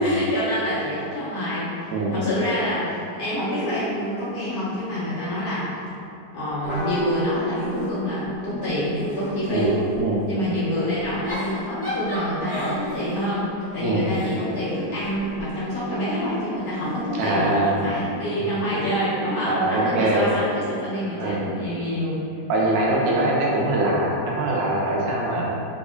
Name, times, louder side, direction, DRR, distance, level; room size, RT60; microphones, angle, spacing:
voice 1, 0.0-5.7 6.3-9.8 10.3-17.5 17.8-22.2, equal, 55° left, -12 dB, 1.5 m, -26 dB
Giggle / Chuckle chortle, 6.6-8.2 8.7-10.1 11.0-15.5 16.6-18.0, equal, 5° left, 0.8 m, -36 dB
sound 1, 6.7-11.6, right 1 dB, 75° left, 1.9 m, -36 dB
voice 2, 17.2-17.7 19.5-20.3 21.2-21.5 22.5-25.5, right 2 dB, 75° right, -4 dB, 1.2 m, -22 dB
3.5 x 3.3 x 2.2 m, 2.6 s
omnidirectional pair, 2.0 m